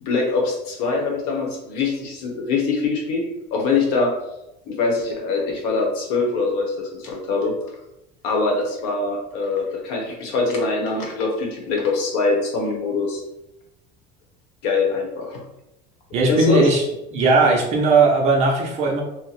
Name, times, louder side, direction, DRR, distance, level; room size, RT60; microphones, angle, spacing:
voice 1, 0.0-4.1 4.7-7.5 8.2-13.2 14.6-15.4 16.3-16.7, left 3 dB, 80° left, 1 dB, 1.0 m, -23 dB
voice 2, 16.1-16.8 17.1-19.0, right 3 dB, 35° right, 0 dB, 0.6 m, -17 dB
2.9 x 2.1 x 4.0 m, 0.89 s
cardioid pair, 175°, 20 cm